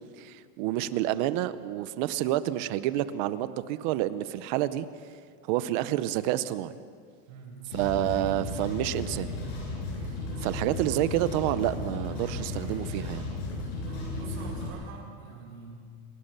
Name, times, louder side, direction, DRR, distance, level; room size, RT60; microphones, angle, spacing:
voice 1, 0.2-4.9 5.4-6.7 7.7-9.3 10.4-13.2, right 14 dB, 35° right, 15 dB, 0.7 m, -29 dB
voice 2, 7.3-8.3 13.8-16.1, right 3 dB, 65° right, -2 dB, 7.7 m, -45 dB
sound 1, 7.6-14.7, left 2 dB, 50° left, 7.6 m, -35 dB
29.0 x 18.5 x 6.8 m, 2.1 s
supercardioid pair, 170°, 43 cm